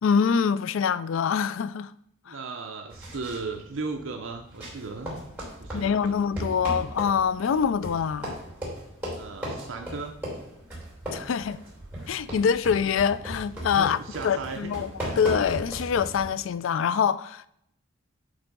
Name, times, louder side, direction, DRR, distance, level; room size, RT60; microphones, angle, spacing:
voice 1, 0.0-1.9 2.3-2.4 5.7-8.4 11.1-11.6 12.1-14.0 14.2-14.9 15.2-17.5, left 7 dB, 65° left, 0.3 m, -25 dB
voice 2, 2.2-5.1 5.6-6.2 9.1-10.1 13.7-14.7, right 4 dB, 70° right, 0.6 m, -36 dB
sound 1, 2.9-16.3, equal, 10° right, 3.1 m, -37 dB
8.8 x 3.5 x 5.2 m
head